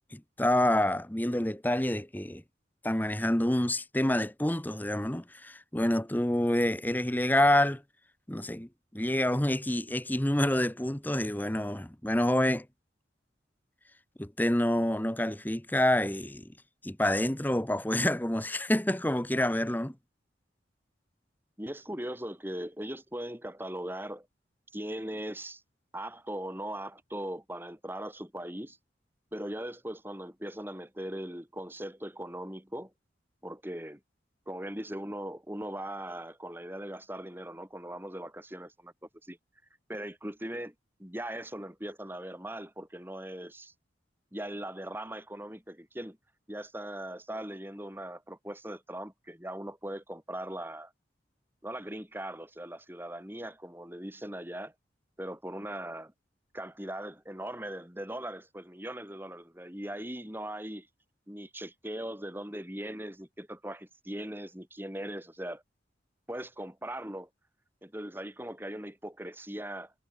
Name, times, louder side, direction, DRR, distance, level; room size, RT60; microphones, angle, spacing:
voice 1, 0.1-2.4 2.8-7.8 8.3-12.7 14.2-16.5 16.8-19.9, left 1 dB, 10° left, 1.0 m, -27 dB
voice 2, 21.6-24.3 24.7-25.6 25.9-28.8 29.3-32.9 33.4-34.0 34.5-38.9 39.2-39.4 39.9-40.7 41.0-43.7 44.3-46.2 46.5-50.9 51.6-54.7 55.2-56.1 56.5-60.9 61.3-65.6 66.3-67.3 67.8-69.9, right 1 dB, 10° right, 4.9 m, -39 dB
head